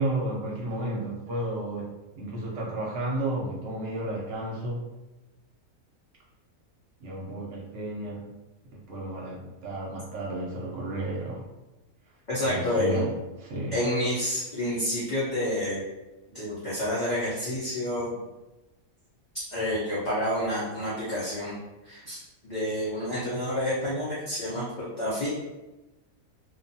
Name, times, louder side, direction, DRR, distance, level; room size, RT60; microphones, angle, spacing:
voice 1, 0.0-4.8 7.0-8.3 8.7-11.5 12.4-13.1 13.4-13.8, right 1 dB, 65° right, -3 dB, 1.0 m, -32 dB
voice 2, 12.3-13.0 13.7-15.8 16.3-18.1 19.5-21.5 21.8-25.3, left 1 dB, 45° left, -10 dB, 0.7 m, -29 dB
2.6 x 2.3 x 2.6 m, 1.1 s
omnidirectional pair, 1.5 m